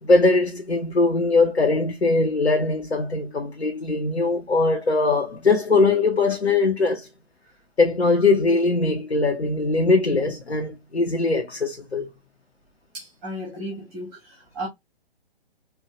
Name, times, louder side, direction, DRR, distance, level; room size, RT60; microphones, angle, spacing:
voice 1, 0.0-7.1 7.8-12.1, left 3 dB, 90° left, 0.8 m, -21 dB
voice 2, 12.9-14.7, equal, 5° right, 0.3 m, -34 dB
4.5 x 2.3 x 2.9 m
figure-of-eight pair, 125°, 32 cm